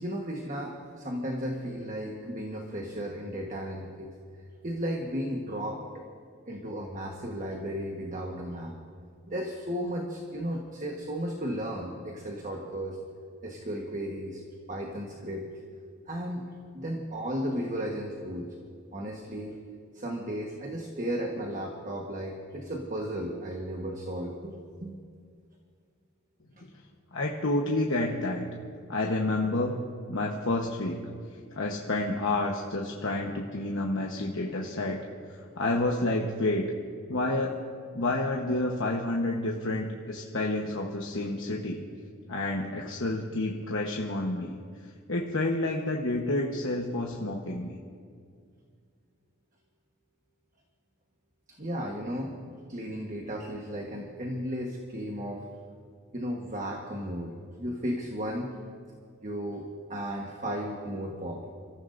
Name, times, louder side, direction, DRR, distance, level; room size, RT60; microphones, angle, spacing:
voice 1, 0.0-4.1 4.6-6.0 6.5-8.7 9.3-13.0 13.4-14.4 14.7-15.4 16.1-16.5 16.7-18.5 18.9-19.6 19.9-24.5 24.8-25.0 51.6-52.3 52.7-55.5 56.1-58.5 59.2-61.5, equal, 40° right, 0 dB, 1.3 m, -34 dB
voice 2, 27.1-28.5 28.9-29.8 30.1-31.0 31.5-35.0 35.5-36.7 37.1-37.6 37.9-41.8 42.3-44.6 45.1-47.8, left 2 dB, 70° left, -1 dB, 1.1 m, -29 dB
28.0 x 14.5 x 2.6 m, 2.2 s
head